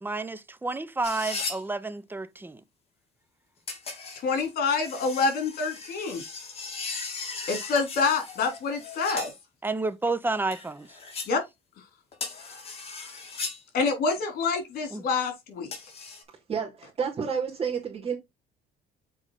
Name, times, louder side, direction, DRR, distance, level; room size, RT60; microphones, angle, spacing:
voice 1, 0.0-2.6 9.6-10.9 14.9-15.0, right 3 dB, 10° right, 0.8 m, -30 dB
sound 1, 1.0-1.6 3.7-9.3 10.5-11.3 12.1-13.6 15.7-16.2, left 4 dB, 35° left, 3.4 m, -37 dB
voice 2, 4.2-6.2 7.5-9.3 11.3-11.4 13.7-15.7, left 4 dB, 65° left, 3.7 m, -27 dB
voice 3, 16.5-18.2, right 6 dB, 35° right, 2.9 m, -30 dB
7.4 x 4.9 x 4.1 m
cardioid pair, 110°, 17 cm